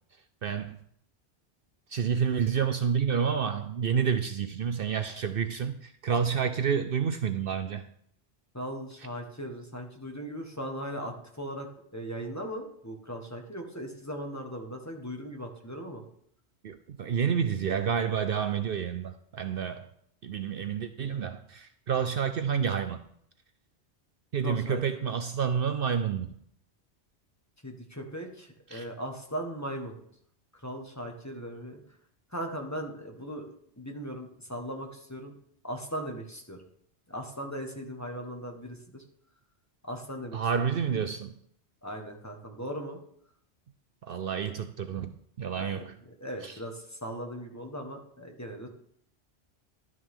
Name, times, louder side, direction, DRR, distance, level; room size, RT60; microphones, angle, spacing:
voice 1, 0.4-0.8 1.9-7.8 16.6-19.9 20.2-23.0 24.3-26.3 28.7-28.9 40.3-41.4 44.0-45.9 46.4-46.6, right 7 dB, 60° right, 0.7 m, -29 dB
voice 2, 8.5-16.0 24.4-25.0 27.6-30.0 30.6-31.8 32.3-33.4 33.8-35.3 35.6-36.6 37.1-39.0 39.9-40.7 41.8-43.0 45.6-45.8 46.2-48.7, equal, 15° left, 1.5 m, -38 dB
12.0 x 9.6 x 3.7 m
omnidirectional pair, 1.2 m